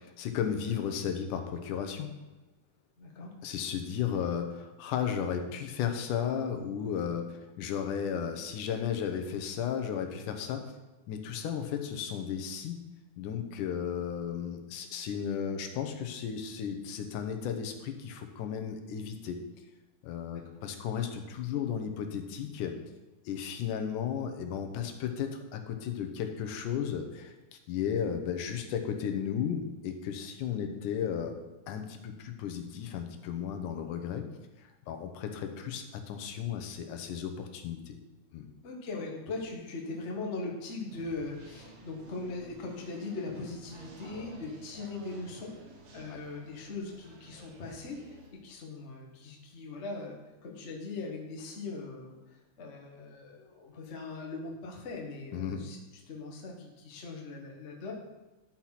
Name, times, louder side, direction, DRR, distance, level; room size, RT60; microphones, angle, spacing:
voice 1, 0.0-2.1 3.4-10.7 11.1-12.9 13.2-19.4 20.0-22.8 23.3-27.3 27.7-31.4 31.7-34.3 34.9-38.0 38.3-38.5 46.1-46.2 55.3-55.6, left 8 dB, 85° left, 5 dB, 2.4 m, -34 dB
voice 2, 3.0-3.3 20.3-20.4 30.6-30.7 38.6-45.6 45.9-50.2 50.4-55.8 56.1-57.9, left 3 dB, 45° left, 0 dB, 0.8 m, -40 dB
sound 1, 40.9-48.3, right 3 dB, 85° right, 3.2 m, -53 dB
11.5 x 4.5 x 5.8 m, 1.1 s
omnidirectional pair, 3.6 m